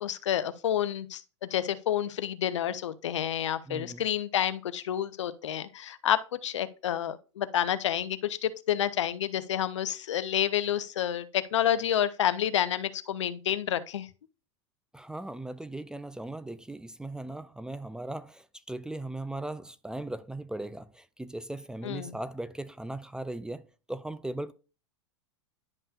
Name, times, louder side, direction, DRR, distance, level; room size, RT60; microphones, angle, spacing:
voice 1, 0.0-14.1 21.8-22.2, left 10 dB, 75° left, 0.6 m, -29 dB
voice 2, 3.7-4.0 14.9-24.5, right 1 dB, 5° right, 0.4 m, -38 dB
10.5 x 5.4 x 2.4 m
hypercardioid pair, 95°, 16 cm